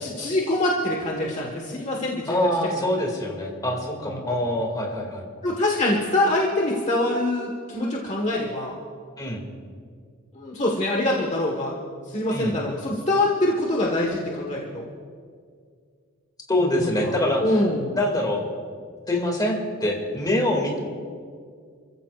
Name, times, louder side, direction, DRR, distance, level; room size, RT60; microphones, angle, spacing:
voice 1, 0.0-2.5 2.7-2.8 4.0-4.3 5.4-8.7 10.3-11.7 12.1-14.8 16.6-18.0, left 1 dB, 35° left, -1 dB, 1.5 m, -25 dB
voice 2, 2.3-5.2 9.2-9.4 12.3-12.6 16.5-17.6 17.9-18.4 19.1-20.8, left 1 dB, 20° left, 0 dB, 2.4 m, -25 dB
29.5 x 15.0 x 2.5 m, 2.1 s
head